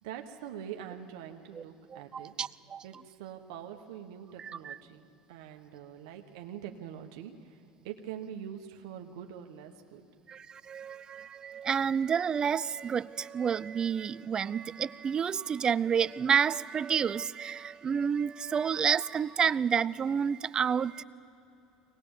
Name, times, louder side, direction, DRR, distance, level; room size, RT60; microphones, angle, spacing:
voice 1, 0.0-2.3 2.8-7.6 7.8-10.0, right 9 dB, 85° right, 1.2 m, -44 dB
voice 2, 1.9-2.8 4.4-4.8 10.3-21.0, right 7 dB, 30° right, 0.4 m, -30 dB
23.5 x 19.0 x 7.2 m
supercardioid pair, 105°, 3 cm